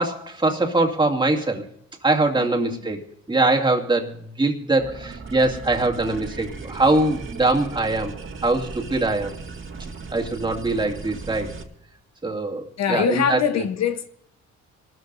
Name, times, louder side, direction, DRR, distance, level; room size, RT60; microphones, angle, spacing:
voice 1, 0.0-1.7 2.0-8.1 8.4-9.3 10.1-11.5 12.2-13.4, right 2 dB, 15° right, 2.4 m, -22 dB
voice 2, 2.4-3.0 12.8-14.1, left 7 dB, 60° left, 1.0 m, -24 dB
sound 1, 4.8-11.6, right 4 dB, 40° right, 2.1 m, -37 dB
26.5 x 13.5 x 2.6 m
cardioid pair, 90°, 30 cm